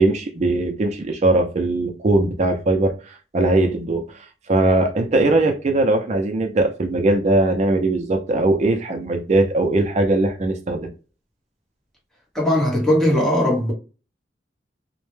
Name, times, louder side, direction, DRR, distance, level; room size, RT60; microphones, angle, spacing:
voice 1, 0.0-4.0 4.5-10.9, right 2 dB, 40° right, 0.4 m, -20 dB
voice 2, 12.3-13.7, left 1 dB, 5° left, 0.8 m, -19 dB
2.1 x 2.0 x 3.0 m
head